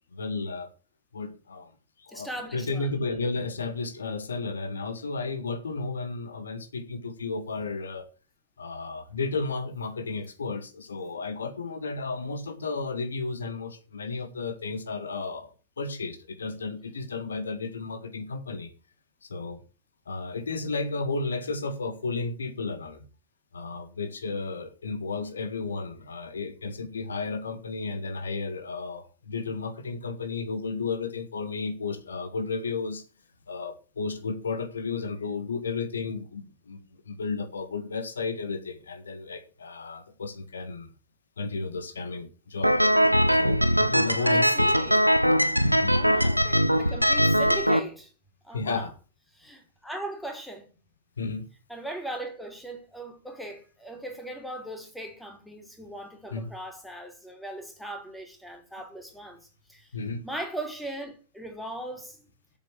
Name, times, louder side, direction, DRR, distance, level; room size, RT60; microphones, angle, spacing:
voice 1, 0.1-0.7 1.1-1.7 2.0-8.1 8.6-18.7 19.2-19.6 20.1-23.1 23.5-33.0 33.5-36.8 37.0-40.9 41.4-42.8 43.3-44.7 45.6-46.0 48.5-48.9 51.2-51.5 56.3-56.5 59.9-60.2, left 4 dB, 70° left, 1.7 m, -33 dB
voice 2, 2.1-2.9 44.2-45.0 46.0-48.1 48.4-48.9 49.3-50.7 51.7-59.4 59.7-59.9 60.2-62.3, right 1 dB, ahead, 3.6 m, -39 dB
sound 1, 42.6-47.8, equal, 90° right, 1.0 m, -21 dB
8.1 x 8.1 x 7.9 m
figure-of-eight pair, 90°, 0 cm